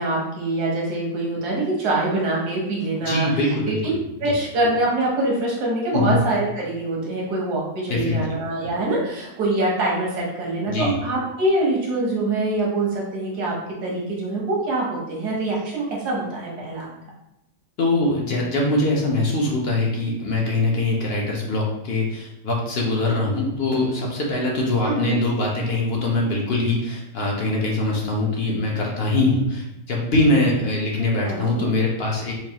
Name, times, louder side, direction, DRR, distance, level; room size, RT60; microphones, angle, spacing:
voice 1, 0.0-3.3 3.7-3.8 4.2-13.5 13.8-16.9 24.8-25.2 31.2-31.7, right 2 dB, 85° right, -3 dB, 1.6 m, -24 dB
voice 2, 3.0-3.9 4.2-4.3 5.9-6.2 7.9-8.3 10.7-11.0 17.8-32.3, left 2 dB, 55° left, -2 dB, 0.7 m, -22 dB
4.6 x 2.4 x 2.8 m, 0.85 s
omnidirectional pair, 1.6 m